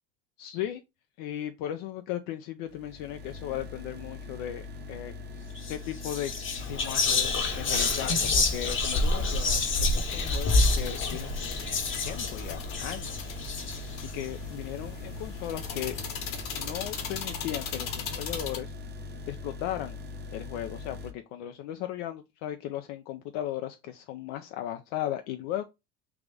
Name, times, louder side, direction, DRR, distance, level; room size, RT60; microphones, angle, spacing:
voice 1, 0.4-0.8 1.2-4.6 4.9-5.1 5.7-6.3 6.6-11.6 12.0-13.4 14.0-16.0 16.5-18.7 19.3-20.0 20.3-25.7, left 12 dB, 65° left, 0.5 m, -36 dB
sound 1, 2.7-21.1, left 3 dB, 25° right, 0.8 m, -41 dB
Whispering, 5.6-5.7 6.0-14.1, left 3 dB, 25° left, 0.9 m, -28 dB
sound 2, 8.5-18.6, left 6 dB, 45° left, 1.0 m, -39 dB
3.5 x 2.5 x 3.3 m
supercardioid pair, 100°, 44 cm